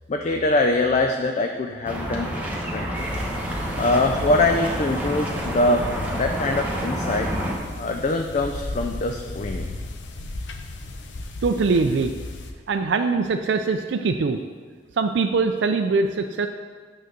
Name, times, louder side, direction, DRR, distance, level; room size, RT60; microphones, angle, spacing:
voice 1, 0.1-2.3 2.7-3.1 3.8-7.3 7.8-9.7, left 2 dB, 40° left, 4 dB, 0.4 m, -23 dB
sound 1, 1.9-7.5, equal, 10° right, 1.1 m, -28 dB
sound 2, 2.9-12.5, left 2 dB, 80° left, 0.7 m, -36 dB
voice 2, 11.4-12.1 12.7-14.4 15.0-16.5, right 4 dB, 75° right, 6 dB, 0.4 m, -22 dB
9.0 x 3.9 x 6.6 m, 1.5 s
head